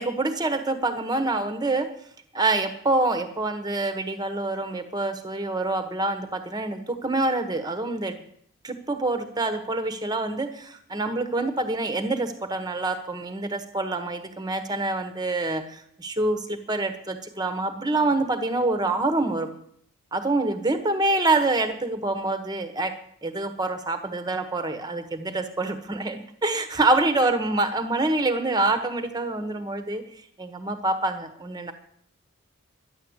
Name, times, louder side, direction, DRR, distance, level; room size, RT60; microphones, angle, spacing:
voice 1, 0.0-1.9 2.3-8.2 8.6-19.5 20.1-22.9 23.2-30.0 30.4-31.7, right 2 dB, 20° right, 8 dB, 1.4 m, -26 dB
12.5 x 10.5 x 8.1 m, 0.66 s
head